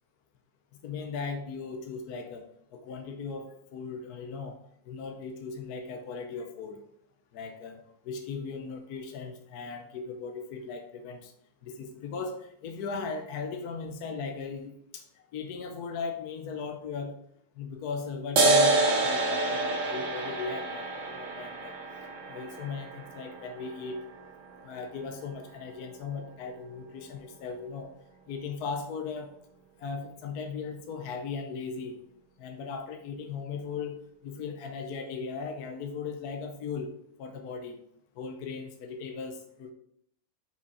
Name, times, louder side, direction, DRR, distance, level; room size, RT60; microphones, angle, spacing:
voice 1, 0.8-4.6 4.9-6.8 7.3-11.3 11.6-17.1 17.6-21.8 22.3-24.0 24.6-27.9 28.3-29.3 29.8-32.0 32.4-34.0 34.2-36.9 37.2-37.8 38.2-39.7, left 5 dB, 65° left, 4 dB, 1.1 m, -38 dB
Large Cymbal - Stick, 18.4-25.3, right 2 dB, 50° right, 1.0 m, -28 dB
6.0 x 4.9 x 4.1 m, 0.70 s
omnidirectional pair, 2.1 m